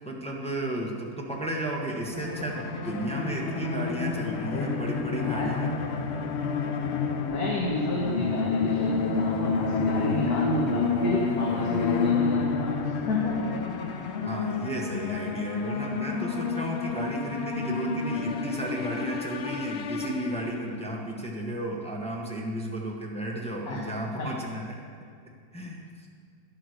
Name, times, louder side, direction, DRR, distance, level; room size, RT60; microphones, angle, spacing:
voice 1, 0.0-5.7 14.2-24.8 25.5-26.1, right 1 dB, 5° left, -1 dB, 1.1 m, -33 dB
sound 1, 2.1-20.8, left 5 dB, 70° left, 0.6 m, -29 dB
voice 2, 4.4-4.7 5.1-5.5 7.2-13.5 23.7-23.8 24.2-24.3, left 1 dB, 55° left, -3 dB, 1.8 m, -30 dB
10.5 x 8.8 x 6.5 m, 2.2 s
omnidirectional pair, 2.1 m